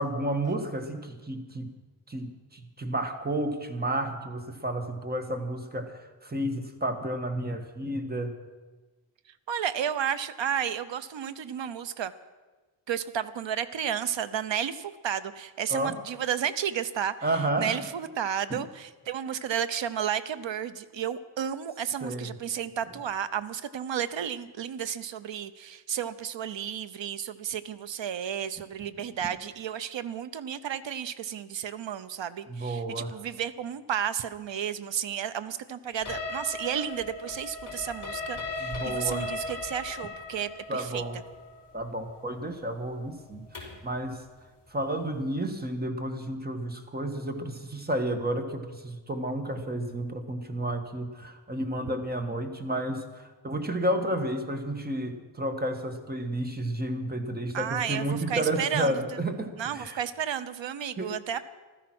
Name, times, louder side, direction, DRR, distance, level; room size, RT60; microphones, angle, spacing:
voice 1, 0.0-1.7 2.1-8.4 15.7-16.0 17.2-17.9 18.5-18.6 22.0-22.3 32.5-33.1 38.6-39.3 40.7-41.2 41.7-44.2 44.7-60.0 61.0-61.4, right 1 dB, 20° right, 6 dB, 1.4 m, -31 dB
voice 2, 9.5-12.1 12.9-17.1 17.6-41.0 57.5-59.0 59.6-61.4, right 9 dB, 65° right, 13 dB, 0.8 m, -32 dB
sound 1, 36.1-43.9, left 2 dB, 30° left, 4.5 m, -37 dB
15.0 x 13.0 x 6.1 m, 1.3 s
wide cardioid pair, 150°, 48 cm